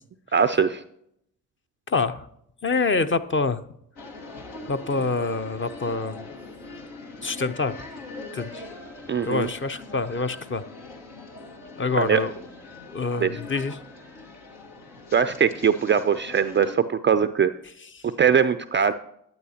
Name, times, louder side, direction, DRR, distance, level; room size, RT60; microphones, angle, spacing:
voice 1, 0.3-0.8 9.1-9.5 12.0-12.2 13.2-13.3 15.1-17.5 18.0-18.9, right 7 dB, 25° right, 12 dB, 0.4 m, -21 dB
voice 2, 1.9-2.3 2.6-3.6 4.7-6.2 7.2-7.8 8.3-8.6 9.2-10.6 11.8-12.3 12.9-13.8 17.9-18.0, left 3 dB, 25° left, 9 dB, 0.7 m, -26 dB
sound 1, 4.0-16.7, left 2 dB, 75° left, 1.7 m, -42 dB
12.0 x 9.4 x 2.8 m, 0.72 s
hypercardioid pair, 50°, 46 cm